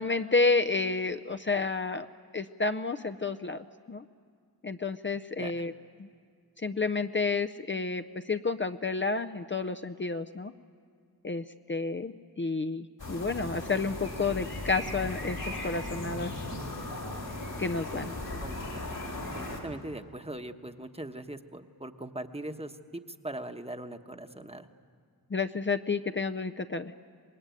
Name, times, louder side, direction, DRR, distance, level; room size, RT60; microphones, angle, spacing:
voice 1, 0.0-2.1 2.3-4.0 4.6-5.7 6.0-6.1 6.6-10.5 11.2-16.3 17.6-18.1 25.3-26.9, left 4 dB, 30° left, 8 dB, 0.6 m, -30 dB
sound 1, 13.0-19.6, left 1 dB, 90° left, 3.9 m, -37 dB
voice 2, 18.4-18.8 19.3-24.7, right 1 dB, 15° right, 7 dB, 1.1 m, -41 dB
25.0 x 20.5 x 9.2 m, 2.2 s
wide cardioid pair, 70°, 36 cm